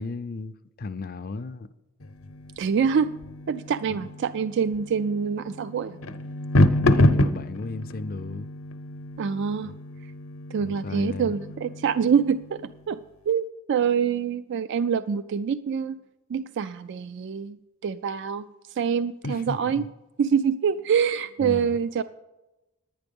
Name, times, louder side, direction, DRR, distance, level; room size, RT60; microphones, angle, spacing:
voice 1, 0.0-1.7 6.7-8.5 9.6-9.7 10.6-11.4 19.2-19.9 21.4-21.8, left 3 dB, 45° left, 0.5 m, -34 dB
sound 1, 2.0-12.8, left 1 dB, 80° left, 0.7 m, -28 dB
voice 2, 2.6-3.1 3.5-6.0 9.2-9.7 10.5-12.6 12.9-13.0 13.3-16.0 16.3-17.6 17.8-18.4 18.7-19.8 20.2-22.0, right 7 dB, 55° right, 0.3 m, -25 dB
10.5 x 9.5 x 5.3 m
head